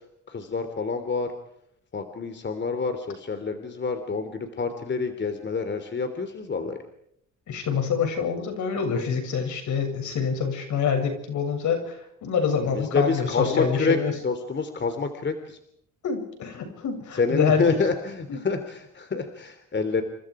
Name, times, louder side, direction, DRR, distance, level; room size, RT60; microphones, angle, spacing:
voice 1, 0.3-1.3 1.9-6.8 12.6-14.0 14.2-15.6 17.2-20.0, left 4 dB, 35° left, 8 dB, 3.2 m, -27 dB
voice 2, 7.5-14.2 16.0-17.8 18.3-18.4, left 6 dB, 70° left, 5 dB, 7.7 m, -26 dB
29.5 x 26.5 x 5.0 m, 0.73 s
cardioid pair, 90°, 30 cm